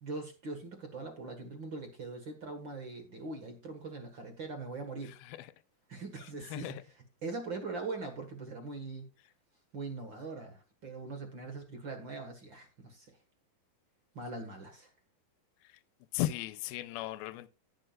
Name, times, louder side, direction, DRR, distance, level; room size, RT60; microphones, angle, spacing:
voice 1, 0.0-5.2 5.9-6.8 7.2-9.1 9.7-13.2 14.1-14.9, right 3 dB, 50° right, 1.5 m, -41 dB
voice 2, 5.0-5.5 6.4-6.8 15.6-15.8 16.1-17.5, left 14 dB, 90° left, 2.6 m, -37 dB
17.5 x 7.4 x 2.4 m
omnidirectional pair, 4.3 m